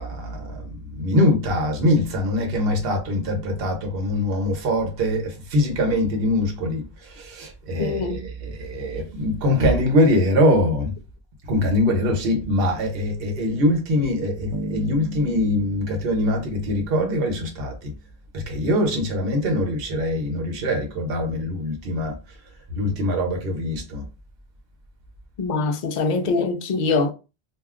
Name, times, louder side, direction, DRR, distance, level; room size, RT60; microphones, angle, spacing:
voice 1, 0.0-11.0 11.5-17.9 18.3-22.2 22.8-24.1, left 1 dB, 65° right, 1.0 m, -23 dB
voice 2, 7.8-8.2 25.4-27.1, left 4 dB, 55° left, 0.5 m, -23 dB
Bass guitar, 14.5-17.6, right 2 dB, 40° right, 0.5 m, -36 dB
2.3 x 2.3 x 3.4 m
omnidirectional pair, 1.0 m